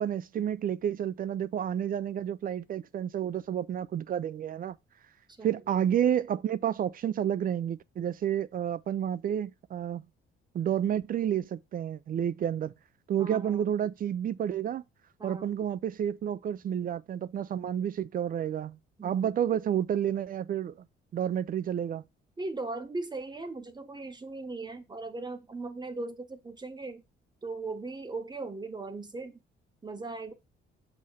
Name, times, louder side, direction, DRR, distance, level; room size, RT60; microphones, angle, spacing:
voice 1, 0.0-4.8 5.4-10.0 10.5-12.7 13.1-14.8 15.2-20.7 21.1-22.0, right 9 dB, 45° right, 0.4 m, -30 dB
voice 2, 5.3-5.6 13.2-13.7 15.2-15.6 19.0-19.3 22.4-27.0 27.4-29.4 29.8-30.3, right 3 dB, 20° right, 0.9 m, -38 dB
6.1 x 2.9 x 5.5 m
cardioid pair, 90°, 20 cm